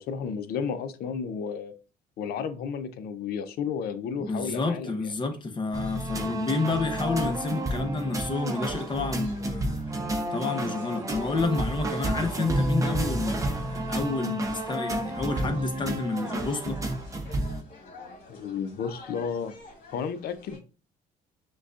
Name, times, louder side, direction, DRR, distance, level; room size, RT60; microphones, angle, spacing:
voice 1, 0.0-1.7 2.2-5.1 18.3-19.6 19.9-20.6, left 6 dB, 65° left, 0.6 m, -32 dB
voice 2, 4.2-9.8 10.3-16.8, left 3 dB, 30° left, 0.7 m, -30 dB
sound 1, 5.7-17.6, right 1 dB, 20° right, 0.7 m, -30 dB
sound 2, 8.5-20.6, left 2 dB, 50° left, 1.8 m, -50 dB
6.1 x 2.3 x 2.4 m
cardioid pair, 110°, 17 cm